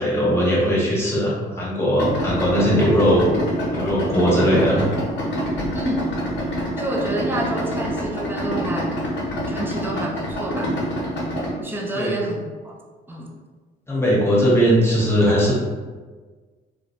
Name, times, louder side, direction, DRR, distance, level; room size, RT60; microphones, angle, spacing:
voice 1, 0.0-3.2 3.7-4.9 11.9-12.2 13.9-15.5, equal, 10° left, -6 dB, 0.9 m, -19 dB
Idling, 2.0-11.5, equal, 70° left, 0.7 m, -26 dB
voice 2, 6.8-9.0 9.5-10.7 11.6-12.8 13.1-13.3, right 1 dB, 10° right, -1 dB, 0.4 m, -28 dB
2.3 x 2.0 x 2.9 m, 1.4 s
cardioid pair, 90°, 20 cm